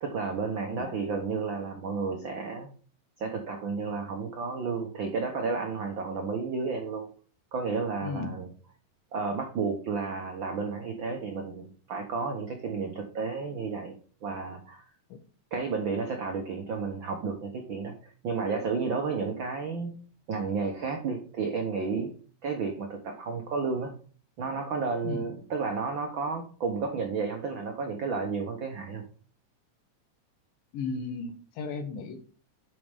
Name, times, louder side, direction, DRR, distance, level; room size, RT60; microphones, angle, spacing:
voice 1, 0.0-2.7 3.2-7.1 7.5-8.5 9.1-14.8 15.5-17.9 18.2-20.0 20.3-22.1 22.4-23.9 24.4-29.0, right 4 dB, 80° right, 3 dB, 1.0 m, -32 dB
voice 2, 8.0-8.4 15.1-15.2 25.0-25.3 30.7-32.2, left 4 dB, 85° left, 7 dB, 3.1 m, -35 dB
9.3 x 5.4 x 3.5 m, 0.41 s
omnidirectional pair, 3.9 m